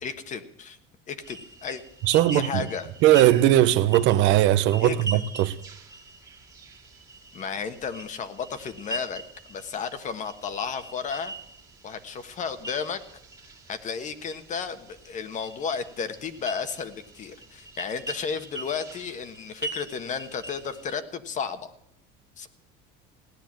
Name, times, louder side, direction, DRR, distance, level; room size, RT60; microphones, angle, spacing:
voice 1, 0.0-0.8 1.1-1.8 2.3-2.9 4.8-5.2 7.3-9.2 9.5-11.3 11.8-13.0 13.7-21.7 22.4-22.5, left 6 dB, 35° left, 1.4 m, -33 dB
sound 1, 1.2-20.9, right 2 dB, 15° right, 2.1 m, -42 dB
voice 2, 2.0-2.6 3.0-5.6, right 13 dB, 65° right, 0.9 m, -19 dB
17.0 x 10.0 x 7.5 m
cardioid pair, 140°, 21 cm